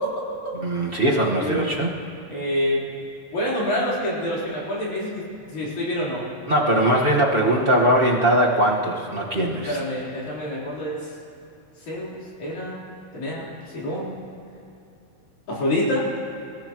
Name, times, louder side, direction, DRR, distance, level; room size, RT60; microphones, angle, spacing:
voice 1, 0.0-0.5 1.4-1.7 2.3-2.8 3.3-5.2 5.5-6.2 9.4-11.0 11.9-12.8 13.1-13.5 13.7-14.1 15.5-16.1, left 1 dB, 70° left, -6 dB, 5.5 m, -27 dB
voice 2, 0.5-1.9 6.5-9.8, right 1 dB, 30° right, -3 dB, 1.0 m, -20 dB
28.5 x 15.5 x 3.1 m, 2.7 s
omnidirectional pair, 3.5 m